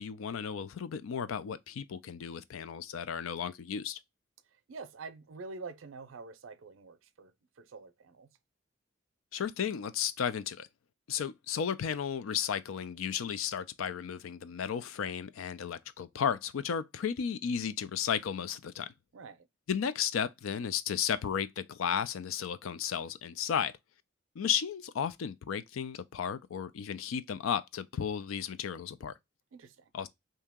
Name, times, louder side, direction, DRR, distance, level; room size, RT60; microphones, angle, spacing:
voice 1, 0.0-4.0 9.3-10.7 11.1-18.9 19.7-23.7 24.4-29.1 29.9-30.1, left 7 dB, 90° left, 0.4 m, -34 dB
voice 2, 4.5-8.3 19.1-19.5 29.5-29.9, right 4 dB, 80° right, 0.5 m, -47 dB
2.8 x 2.7 x 3.5 m
head